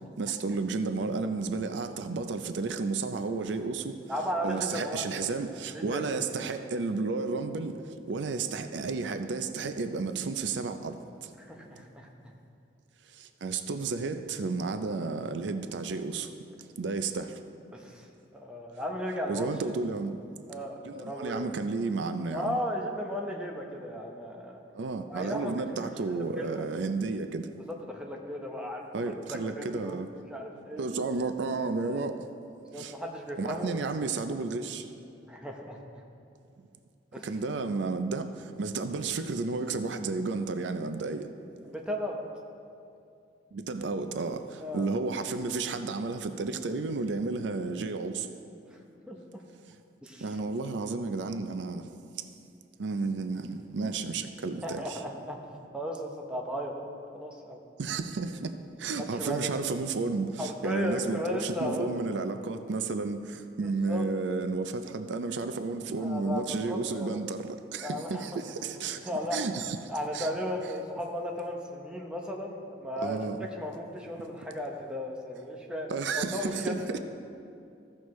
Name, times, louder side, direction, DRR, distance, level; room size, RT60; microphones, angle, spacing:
voice 1, 0.2-3.9 4.4-7.8 8.1-11.0 11.2-11.3 13.2-16.3 16.8-17.3 19.3-20.2 20.8-22.6 24.8-27.5 28.9-30.1 30.8-32.2 32.8-32.9 33.4-34.8 37.2-38.3 38.6-41.3 43.5-48.3 50.2-51.9 52.8-55.0 57.8-58.5 58.8-69.0 69.3-69.8 70.1-70.3 73.0-73.5 75.9-77.0, right 4 dB, 80° right, 9 dB, 0.5 m, -32 dB
voice 2, 4.1-5.3 5.7-6.0 11.4-12.1 17.7-18.1 18.3-19.5 20.5-21.5 22.3-24.6 25.1-26.7 27.7-28.8 29.3-30.0 30.3-30.9 31.8-32.0 32.7-34.1 35.3-35.8 37.1-37.2 41.6-42.2 44.6-44.9 48.7-48.8 49.1-49.4 50.0-50.3 54.6-55.4 55.7-56.7 57.1-57.6 59.0-59.5 60.4-62.0 63.6-64.1 66.0-67.2 67.8-68.2 69.0-69.4 69.9-73.2 73.6-76.8, equal, 5° right, 0 dB, 0.8 m, -35 dB
15.0 x 6.3 x 3.1 m, 2.5 s
head